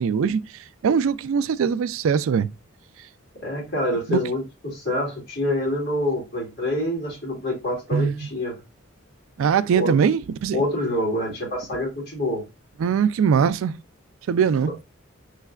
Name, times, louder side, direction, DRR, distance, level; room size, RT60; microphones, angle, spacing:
voice 1, 0.0-2.5 4.1-4.2 7.9-8.2 9.4-10.6 12.8-13.7 14.3-14.7, right 6 dB, 70° right, 0.3 m, -21 dB
voice 2, 3.4-8.6 9.7-10.0 10.5-12.4, left 1 dB, 45° left, 2.3 m, -26 dB
5.6 x 3.2 x 2.4 m
head